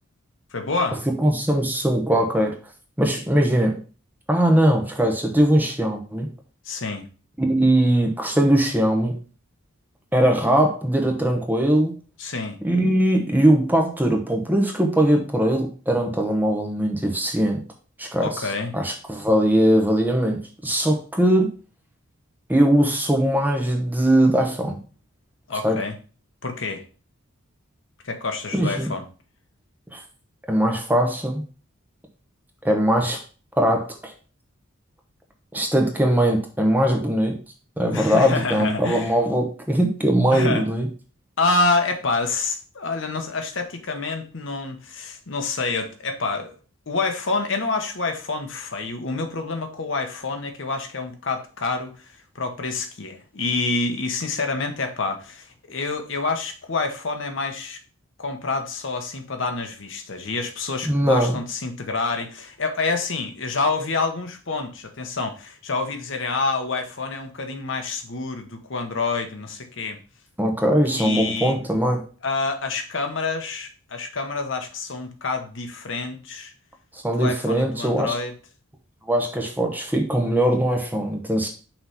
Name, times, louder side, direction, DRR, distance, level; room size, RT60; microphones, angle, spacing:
voice 1, 0.5-1.0 6.6-7.1 12.2-12.6 18.2-18.7 25.5-26.0 26.4-26.8 28.0-29.0 37.9-39.1 40.3-40.7 41.4-46.5 46.9-51.9 52.3-57.8 58.2-70.0 70.9-71.6 72.2-76.5 77.1-78.3, left 3 dB, 60° left, 0.9 m, -27 dB
voice 2, 1.2-2.5 3.0-3.8 4.3-6.3 7.4-9.2 10.1-11.9 12.6-17.6 18.0-18.4 18.7-21.5 22.5-24.8 25.6-25.8 28.5-28.9 29.9-30.0 30.5-31.4 32.6-33.2 33.6-34.1 35.5-37.4 37.8-40.9 60.8-61.3 70.4-72.0 76.9-78.1 79.1-81.5, right 1 dB, 10° right, 0.9 m, -20 dB
6.0 x 3.2 x 5.6 m
head